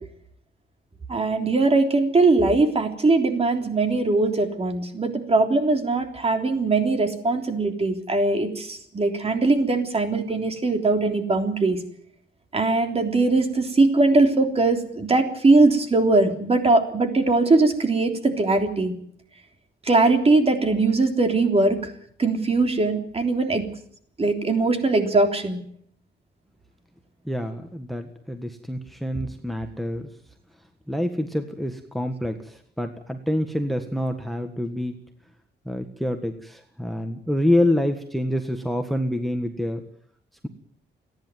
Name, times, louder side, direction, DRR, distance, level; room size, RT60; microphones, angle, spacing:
voice 1, 1.1-11.8 12.5-18.9 19.8-21.9 22.2-23.7 24.2-25.6, right 3 dB, 30° right, 5 dB, 3.5 m, -21 dB
voice 2, 27.2-30.1 30.9-35.0 35.6-39.8, left 1 dB, ahead, 6 dB, 1.6 m, -27 dB
29.5 x 10.5 x 9.3 m, 0.65 s
cardioid pair, 110°, 19 cm